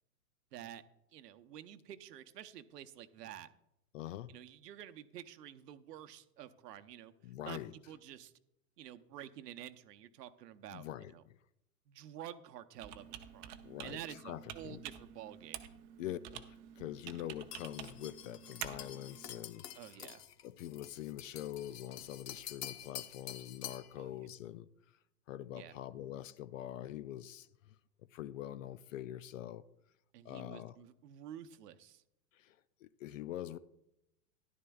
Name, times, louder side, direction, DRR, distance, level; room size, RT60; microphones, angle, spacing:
voice 1, 0.5-0.8 1.1-3.5 4.3-7.1 7.5-7.6 7.9-8.3 8.8-11.2 11.9-13.6 13.8-15.6 19.7-20.2 23.9-24.1 25.5-25.7 30.1-32.0, right 11 dB, 80° right, 0.9 m, -50 dB
voice 2, 3.9-4.3 7.2-7.7 10.7-11.4 13.6-14.8 16.0-19.7 20.4-24.7 25.3-27.7 28.1-29.6 30.2-30.8 32.3-33.6, left 12 dB, 55° left, 0.5 m, -44 dB
Computer keyboard, 12.8-19.4, right 11 dB, 30° right, 0.6 m, -49 dB
sound 1, 17.5-23.9, left 10 dB, 75° left, 0.9 m, -48 dB
13.5 x 11.0 x 2.3 m
hypercardioid pair, 140°, 48 cm